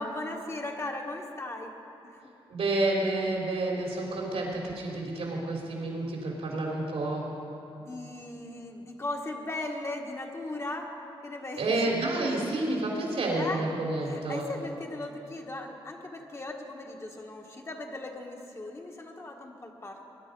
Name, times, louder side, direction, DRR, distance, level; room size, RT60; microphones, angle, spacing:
voice 1, 0.0-1.8 2.0-2.2 7.8-10.9 11.2-12.0 13.4-13.7 14.0-20.1, left 2 dB, 30° left, 2 dB, 1.4 m, -38 dB
voice 2, 2.5-7.2 11.6-14.5, right 2 dB, 85° right, -2 dB, 3.6 m, -29 dB
21.0 x 10.5 x 5.3 m, 2.8 s
wide cardioid pair, 115°, 10 cm